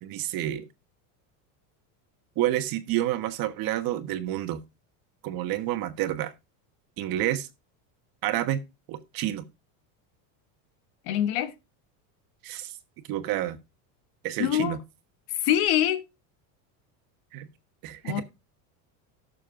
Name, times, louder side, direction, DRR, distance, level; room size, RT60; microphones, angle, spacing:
voice 1, 0.0-0.7 2.4-4.6 5.2-6.3 7.0-7.5 8.2-8.6 8.9-9.4 12.4-12.7 13.1-13.6 14.2-14.8 17.3-17.5 17.8-18.2, right 13 dB, 55° right, 1.3 m, -29 dB
voice 2, 11.1-11.5 14.4-14.8 15.3-16.0 18.0-18.2, left 11 dB, 65° left, 1.2 m, -24 dB
18.0 x 6.6 x 2.5 m
supercardioid pair, 135°, 43 cm